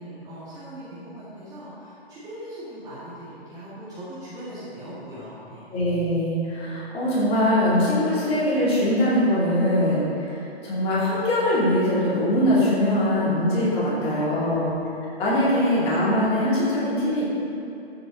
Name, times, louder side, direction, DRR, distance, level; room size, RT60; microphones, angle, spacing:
voice 1, 0.0-5.7 14.1-14.7, right 1 dB, 10° right, -11 dB, 1.9 m, -40 dB
voice 2, 5.7-14.7 15.2-17.3, left 1 dB, 15° left, -8 dB, 2.7 m, -22 dB
13.0 x 7.8 x 3.9 m, 2.8 s
figure-of-eight pair, 135°, 32 cm